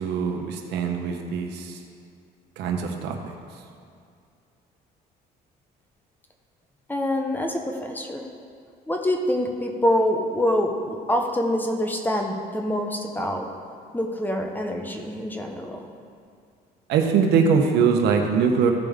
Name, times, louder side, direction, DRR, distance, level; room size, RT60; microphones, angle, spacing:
voice 1, 0.0-1.7 2.6-3.2 16.9-18.7, right 6 dB, 85° right, 3 dB, 1.0 m, -22 dB
voice 2, 6.9-8.2 8.9-13.5 13.9-15.9, left 1 dB, 10° left, 2 dB, 0.9 m, -25 dB
15.0 x 5.2 x 3.6 m, 2.3 s
cardioid pair, 110°, 17 cm